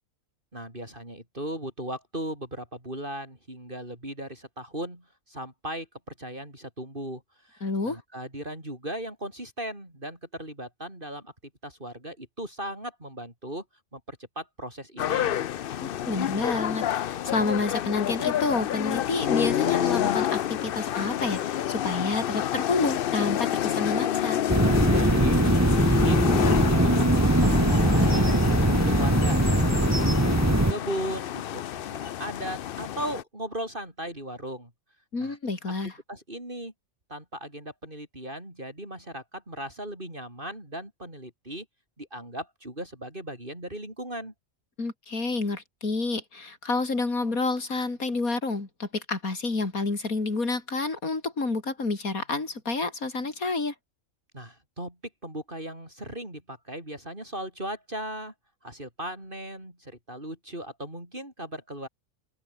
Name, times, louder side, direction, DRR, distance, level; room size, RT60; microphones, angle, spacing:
voice 1, 0.5-11.3 11.6-13.6 13.9-15.5 24.9-26.9 27.1-28.3 28.7-31.4 31.7-34.7 35.2-35.4 36.1-36.7 37.1-41.6 42.0-44.3 54.3-55.0 55.2-58.3 58.6-61.9, right 1 dB, 35° right, 8.0 m, -37 dB
voice 2, 7.6-8.0 15.8-24.4 35.1-35.9 44.8-53.7, left 3 dB, 85° left, 4.2 m, -29 dB
sound 1, 15.0-33.2, left 11 dB, 60° left, 0.6 m, -28 dB
sound 2, 24.5-30.7, right 1 dB, 10° right, 1.5 m, -21 dB
omnidirectional pair, 1.4 m